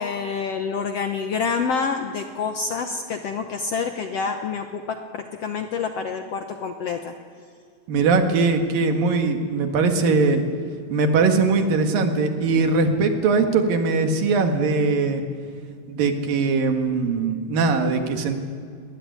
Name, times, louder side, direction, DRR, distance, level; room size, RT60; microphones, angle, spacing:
voice 1, 0.0-7.1, left 5 dB, 70° left, 6 dB, 1.6 m, -27 dB
voice 2, 7.9-10.4 10.9-15.2 15.9-18.4, right 4 dB, 85° right, 5 dB, 3.6 m, -21 dB
21.0 x 20.5 x 9.6 m, 2.2 s
omnidirectional pair, 3.9 m